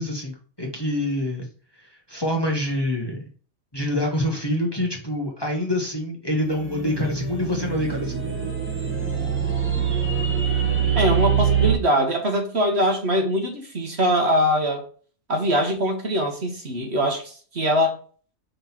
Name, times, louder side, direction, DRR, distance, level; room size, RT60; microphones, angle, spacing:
voice 1, 0.0-1.5 1.8-3.2 3.7-8.3, left 1 dB, 20° left, 1.4 m, -26 dB
sound 1, 6.4-11.7, right 7 dB, 10° right, 1.1 m, -24 dB
voice 2, 10.9-14.8 15.3-18.0, equal, 50° right, 1.6 m, -22 dB
5.4 x 3.8 x 5.9 m
omnidirectional pair, 1.4 m